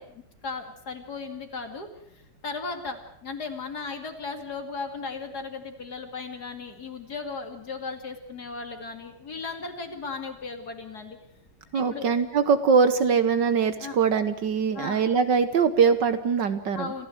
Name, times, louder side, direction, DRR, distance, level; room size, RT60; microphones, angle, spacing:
voice 1, 0.0-11.2 11.7-12.1 13.8-14.0 14.7-15.0 16.7-17.1, left 4 dB, 45° left, 6 dB, 2.8 m, -36 dB
voice 2, 11.7-16.9, right 6 dB, 60° right, 11 dB, 1.5 m, -22 dB
27.0 x 15.0 x 7.8 m, 0.80 s
omnidirectional pair, 2.4 m